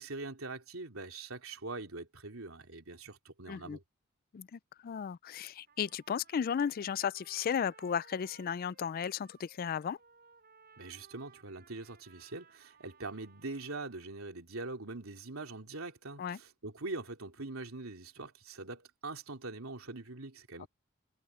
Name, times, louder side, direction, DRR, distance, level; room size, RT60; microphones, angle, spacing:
voice 1, 0.0-3.8 10.8-20.7, right 3 dB, 80° right, 3.1 m, -43 dB
voice 2, 3.5-3.8 4.3-10.0 16.2-16.4 20.6-20.7, left 7 dB, 45° left, 0.3 m, -35 dB
Trumpet, 5.7-14.1, right 5 dB, 50° right, 6.9 m, -62 dB
head